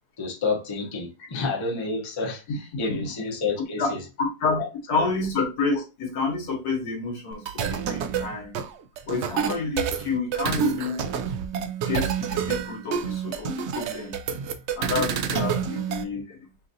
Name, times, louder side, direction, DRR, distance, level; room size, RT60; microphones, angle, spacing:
voice 1, 0.2-4.0 4.6-4.7 5.0-5.1, left 4 dB, 25° left, 0.6 m, -29 dB
voice 2, 4.2-4.6 4.9-8.6 9.1-11.1 11.9-14.2 14.8-16.5, left 4 dB, 75° left, 1.6 m, -29 dB
sound 1, 7.3-16.0, right 7 dB, 80° right, 0.6 m, -28 dB
5.6 x 2.5 x 2.6 m
omnidirectional pair, 1.7 m